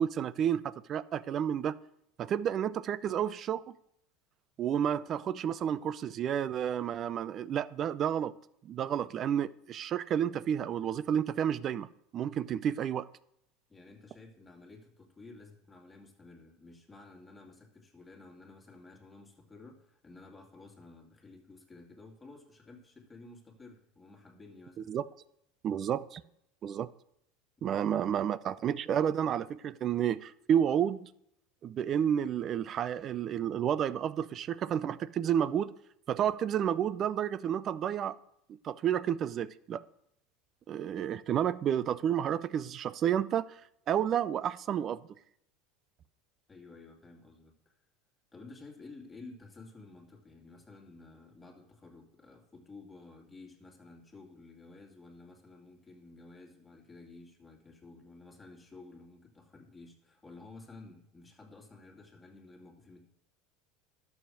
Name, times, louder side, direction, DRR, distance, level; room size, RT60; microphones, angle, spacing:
voice 1, 0.0-1.8 2.2-3.8 4.6-8.3 8.6-13.1 24.8-25.0 25.6-26.2 26.6-26.9 27.6-31.1 31.6-35.7 36.1-38.2 38.6-39.8 40.7-43.5 43.9-45.1, right 9 dB, 40° right, 0.5 m, -31 dB
voice 2, 13.7-24.9 46.5-47.7 48.3-63.0, left 3 dB, 15° left, 2.4 m, -53 dB
11.5 x 7.2 x 6.3 m
supercardioid pair, 115°, 0 cm